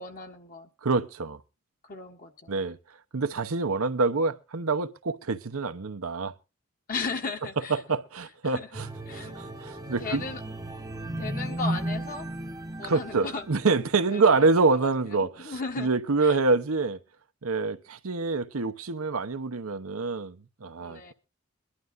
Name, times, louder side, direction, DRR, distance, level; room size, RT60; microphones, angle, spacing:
voice 1, 0.0-0.7 1.9-2.5 6.9-7.8 8.5-8.8 9.1-9.4 10.0-10.4 11.2-12.2 12.8-13.5 14.1-14.4 14.7-15.9 16.2-16.4 20.8-21.1, left 4 dB, 40° left, 1.4 m, -36 dB
voice 2, 0.8-1.4 2.5-2.8 3.1-6.3 7.7-10.3 11.0-11.1 12.8-17.0 17.4-21.1, right 3 dB, 80° right, 0.8 m, -26 dB
sound 1, 8.7-14.0 14.5-14.7, right 1 dB, 15° right, 0.8 m, -35 dB
22.5 x 11.5 x 2.5 m
head